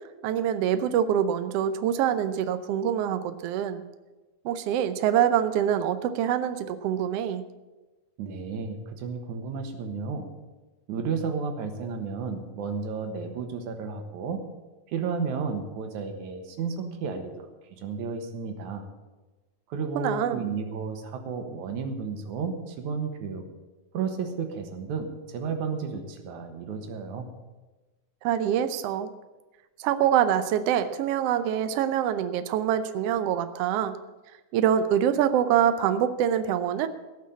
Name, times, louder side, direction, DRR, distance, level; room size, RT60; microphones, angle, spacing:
voice 1, 0.2-3.8 4.4-7.4 19.9-20.4 28.2-29.1 29.8-34.0 34.5-36.9, right 9 dB, 85° right, 10 dB, 1.3 m, -25 dB
voice 2, 8.2-10.3 10.9-14.4 14.9-18.9 19.7-23.5 23.9-27.3, right 5 dB, 70° right, 6 dB, 2.7 m, -32 dB
17.0 x 6.4 x 8.5 m, 1.2 s
omnidirectional pair, 3.8 m